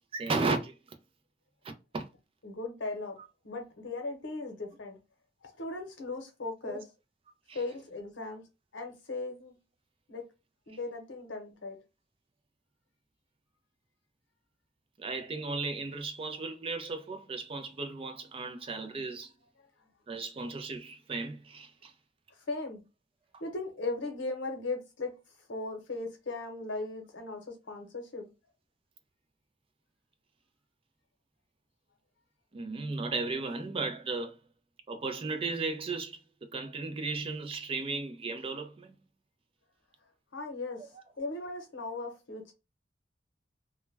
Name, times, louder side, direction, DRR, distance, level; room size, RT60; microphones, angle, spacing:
voice 1, 0.1-0.8 1.6-2.1 6.6-6.8 7.5-7.6 15.0-19.3 20.1-21.9 32.5-34.4 34.9-38.9, right 3 dB, 30° right, 0.4 m, -35 dB
voice 2, 2.4-3.2 3.4-5.0 5.4-6.8 7.5-8.4 8.7-9.5 10.1-10.3 10.7-11.8 19.6-19.7 22.5-22.8 23.4-25.1 25.5-28.3 40.3-40.9 41.2-42.5, left 3 dB, 80° left, 0.8 m, -37 dB
2.2 x 2.1 x 3.2 m
head